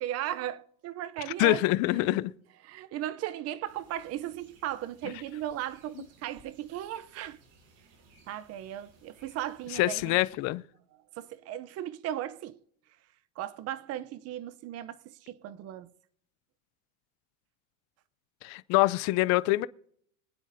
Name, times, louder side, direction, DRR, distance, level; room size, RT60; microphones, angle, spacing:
voice 1, 0.0-1.6 2.1-2.2 2.7-7.4 8.3-10.2 11.2-12.6 13.4-15.9, right 12 dB, 35° right, 0.6 m, -36 dB
voice 2, 1.4-2.3 9.7-10.6 18.4-19.7, left 19 dB, 45° left, 0.4 m, -25 dB
sound 1, 3.6-10.3, right 3 dB, 70° right, 5.2 m, -61 dB
25.5 x 9.2 x 2.6 m
supercardioid pair, 135°, 41 cm